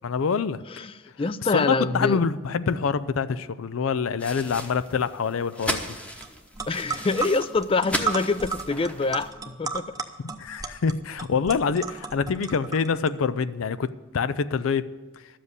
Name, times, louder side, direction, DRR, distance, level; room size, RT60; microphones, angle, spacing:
voice 1, 0.0-0.6 1.5-6.0 10.2-14.9, left 5 dB, 85° left, 15 dB, 0.5 m, -26 dB
voice 2, 0.7-2.2 6.7-9.9, left 3 dB, 25° left, 15 dB, 0.4 m, -26 dB
sound 1, 4.2-9.3, equal, 5° left, 0.9 m, -35 dB
sound 2, 6.2-6.3 6.5-13.1, right 5 dB, 20° right, 0.7 m, -33 dB
12.5 x 7.6 x 8.1 m, 1.3 s
head